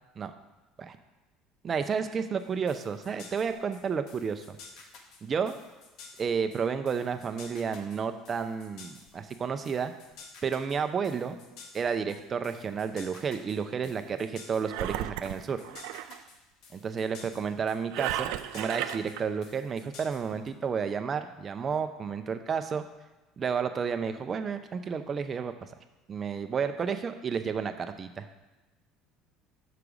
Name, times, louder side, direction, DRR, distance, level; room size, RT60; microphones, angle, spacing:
voice 1, 1.6-4.6 5.2-5.6 6.2-9.9 10.4-11.4 11.7-15.6 16.7-22.8 23.4-25.5 26.1-28.3, right 6 dB, 35° right, 8 dB, 0.6 m, -31 dB
sound 1, 2.4-20.5, left 4 dB, 65° left, 1.1 m, -52 dB
Engine, 14.7-16.2 17.9-19.2, right 13 dB, 75° right, 0.3 m, -34 dB
6.7 x 5.0 x 4.8 m, 1.1 s
supercardioid pair, 95°, 0 cm